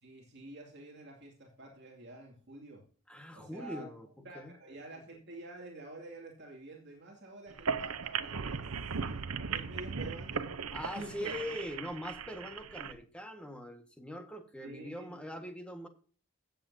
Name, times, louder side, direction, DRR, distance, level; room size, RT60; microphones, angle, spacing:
voice 1, 0.0-2.9 3.3-3.9 4.2-8.7 9.1-9.2 9.5-10.5 10.8-11.6 14.6-15.3, right 2 dB, 55° right, -1 dB, 2.6 m, -48 dB
voice 2, 3.1-4.1 4.3-4.5 10.7-15.9, left 1 dB, 5° left, 5 dB, 1.5 m, -42 dB
sound 1, 7.5-12.9, right 5 dB, 80° right, 0.8 m, -37 dB
16.0 x 8.0 x 2.8 m, 0.40 s
head